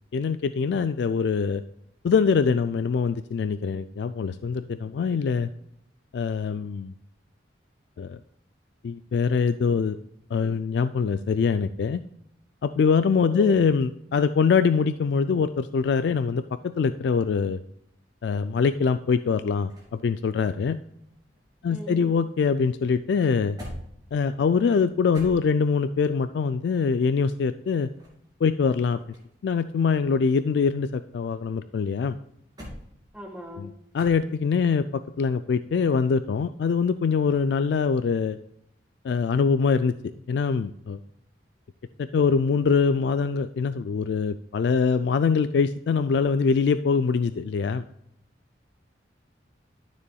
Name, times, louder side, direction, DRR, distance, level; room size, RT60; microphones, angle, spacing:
voice 1, 0.1-1.6 2.0-5.5 6.1-6.9 8.0-8.2 8.8-10.0 10.3-12.0 12.6-17.6 18.2-20.8 21.6-23.6 24.1-27.9 28.4-29.0 29.4-32.2 33.6-38.4 39.0-39.9 40.3-41.0 42.0-47.8, left 5 dB, 65° left, 11 dB, 0.3 m, -23 dB
voice 2, 13.3-13.6 21.7-22.1 33.1-33.7, equal, 5° right, 1 dB, 1.4 m, -39 dB
sound 1, 19.2-22.1 22.3-26.0 27.7-29.5 29.8-31.5 32.0-34.6 37.2-37.6, equal, 20° right, 2.7 m, -47 dB
12.5 x 6.8 x 2.3 m, 0.75 s
head